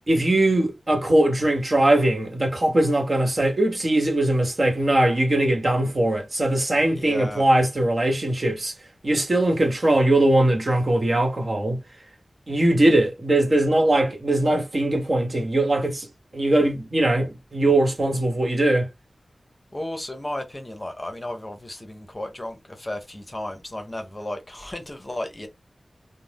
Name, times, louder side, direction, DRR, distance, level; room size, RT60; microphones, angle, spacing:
voice 1, 0.1-8.8 9.0-11.8 12.5-16.1 16.3-18.9, right 1 dB, 50° right, 1.1 m, -21 dB
voice 2, 6.9-7.4 19.7-25.5, left 1 dB, 25° left, 0.7 m, -34 dB
2.6 x 2.0 x 3.3 m
wide cardioid pair, 60°, 0 cm